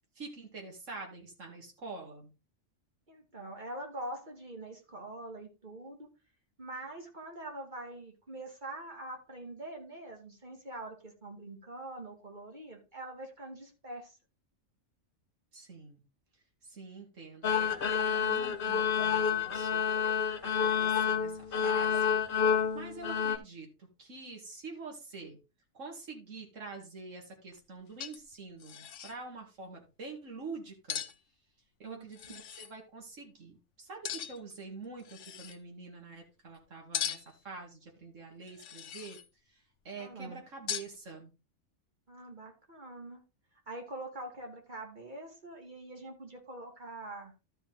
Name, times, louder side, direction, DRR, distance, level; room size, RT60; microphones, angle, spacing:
voice 1, 0.2-2.3 15.5-16.0 16.6-22.2 22.7-25.4 25.7-31.0 31.8-39.2 39.5-41.3, right 4 dB, 80° right, 1 dB, 2.6 m, -46 dB
voice 2, 3.1-6.1 6.6-14.2 31.8-32.1 40.0-40.4 42.1-43.2 43.7-47.3, right 1 dB, 40° right, 2 dB, 2.6 m, -44 dB
sound 1, 17.4-23.4, left 7 dB, 50° left, 1.0 m, -29 dB
sound 2, 27.5-27.6 28.0-28.3 28.6-29.2 30.9-31.2 32.1-32.7 34.0-34.5 35.0-35.6 36.9-37.4 38.5-39.3 40.7-41.0, left 9 dB, 70° left, 1.1 m, -39 dB
12.5 x 5.4 x 3.9 m, 0.28 s
omnidirectional pair, 1.3 m